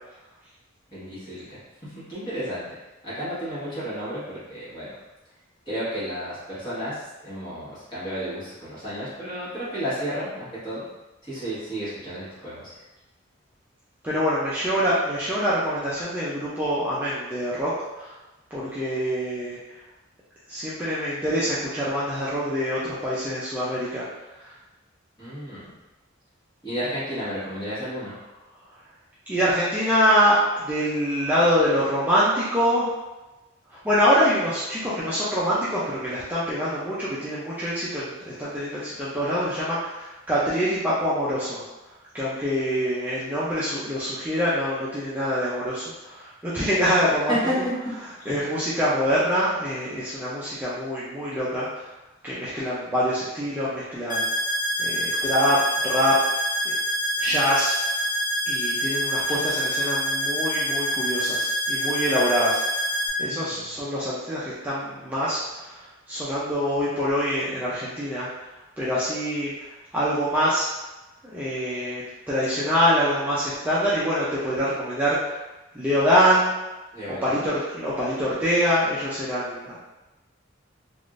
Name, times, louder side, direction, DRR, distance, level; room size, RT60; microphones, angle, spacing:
voice 1, 0.9-2.7 3.0-4.9 5.7-10.8 11.2-12.7 25.2-25.7 26.6-28.2 47.3-47.7 48.2-48.4 63.2-63.6 76.9-77.5, equal, 25° left, -11 dB, 1.4 m, -32 dB
voice 2, 14.0-18.2 18.5-19.6 20.5-24.1 24.4-24.5 29.3-32.9 33.7-41.6 42.1-47.3 48.3-51.9 52.2-54.3 54.8-55.6 55.8-56.8 57.2-57.8 58.5-62.9 63.2-68.3 68.8-70.7 71.2-75.4 75.7-76.6 77.2-79.8, equal, 10° right, -10 dB, 0.4 m, -25 dB
sound 1, 54.1-63.1, equal, 45° left, 0.6 m, -26 dB
3.5 x 2.5 x 2.5 m, 1.1 s
head